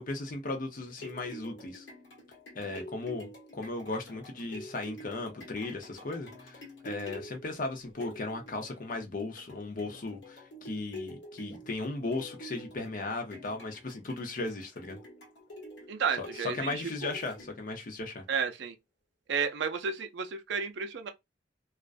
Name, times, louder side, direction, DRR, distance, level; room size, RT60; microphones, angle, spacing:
voice 1, 0.0-1.9 2.5-15.0 16.2-18.2, left 3 dB, 45° left, 0.6 m, -36 dB
sound 1, 0.9-17.8 18.3-18.4, equal, 70° left, 1.1 m, -47 dB
voice 2, 15.9-16.9 18.3-18.7 19.3-21.1, right 6 dB, 65° right, 0.4 m, -32 dB
2.4 x 2.1 x 2.4 m
head